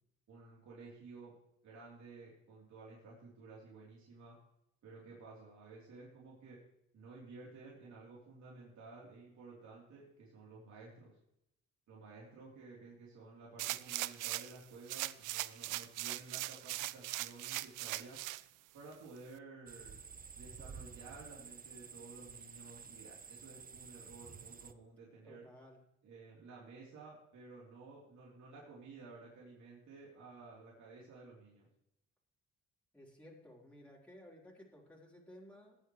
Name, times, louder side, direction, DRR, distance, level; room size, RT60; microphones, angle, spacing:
voice 1, 0.3-1.3 1.6-4.4 4.8-6.6 6.9-11.2 11.9-18.2 18.7-20.0 20.3-25.4 26.0-31.7, right 3 dB, 65° right, -5 dB, 3.4 m, -54 dB
sound 1, 13.6-14.6 14.9-18.4 18.9-19.0, right 17 dB, 90° right, 0.5 m, -40 dB
sound 2, 19.7-24.7, right 6 dB, 30° right, 0.7 m, -51 dB
voice 2, 25.2-25.8 32.9-35.8, left 1 dB, 5° left, -4 dB, 3.9 m, -56 dB
20.0 x 8.0 x 3.2 m, 0.81 s
cardioid pair, 90°, 30 cm